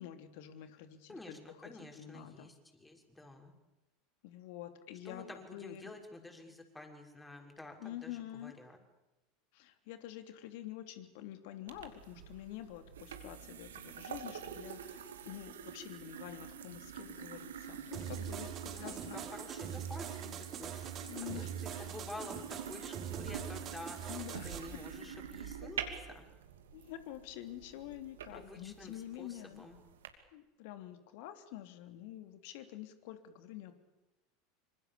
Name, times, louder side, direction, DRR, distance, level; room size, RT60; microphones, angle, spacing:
voice 1, 0.0-2.5 4.2-5.9 7.8-8.5 9.5-19.2 21.1-21.9 24.1-24.9 26.7-29.7 30.3-33.7, left 12 dB, 60° left, 8 dB, 3.1 m, -47 dB
voice 2, 1.1-3.5 5.0-8.8 18.7-20.9 21.3-24.0 24.4-26.3 28.3-29.8, left 2 dB, 10° left, 2 dB, 6.3 m, -50 dB
sound 1, 11.7-30.1, right 7 dB, 75° right, 2.9 m, -47 dB
sound 2, 17.9-24.6, right 9 dB, 40° right, 4.1 m, -43 dB
26.5 x 25.5 x 7.2 m, 1.0 s
figure-of-eight pair, 80°, 0 cm